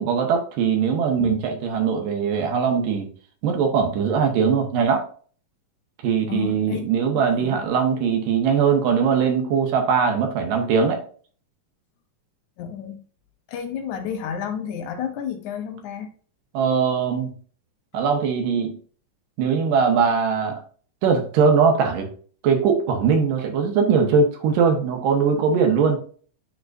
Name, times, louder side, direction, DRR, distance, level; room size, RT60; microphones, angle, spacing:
voice 1, 0.0-3.1 3.4-5.0 6.0-11.0 16.5-17.3 17.9-18.7 19.4-20.6 21.0-22.1 22.4-26.0, right 6 dB, 80° right, 4 dB, 2.9 m, -21 dB
voice 2, 6.3-7.6 12.6-13.0 13.5-16.1, left 8 dB, 70° left, 7 dB, 2.1 m, -31 dB
10.0 x 3.9 x 2.6 m, 0.43 s
omnidirectional pair, 3.8 m